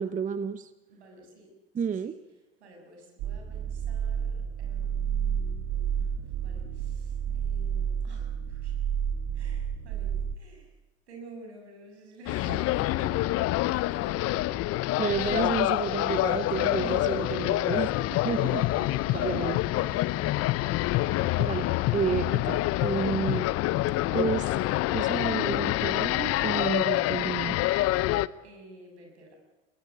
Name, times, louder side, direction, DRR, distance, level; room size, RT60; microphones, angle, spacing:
voice 1, 0.0-0.7 1.7-2.1 15.0-18.6 19.1-19.6 21.4-23.5 24.1-24.6 24.9-27.6, right 7 dB, 25° right, 14 dB, 0.9 m, -31 dB
voice 2, 0.9-2.1 2.6-8.9 9.3-10.8 11.1-14.4 15.1-15.6 16.1-16.3 16.7-17.4 18.3-21.0 28.4-29.4, right 2 dB, 80° right, 3 dB, 7.3 m, -50 dB
sound 1, 3.2-10.4, right 8 dB, 50° right, 1.5 m, -30 dB
sound 2, 12.3-28.3, left 17 dB, 45° left, 0.8 m, -27 dB
sound 3, 15.2-25.3, left 8 dB, 25° left, 1.1 m, -44 dB
23.0 x 19.5 x 8.5 m, 1.1 s
hypercardioid pair, 85°, 33 cm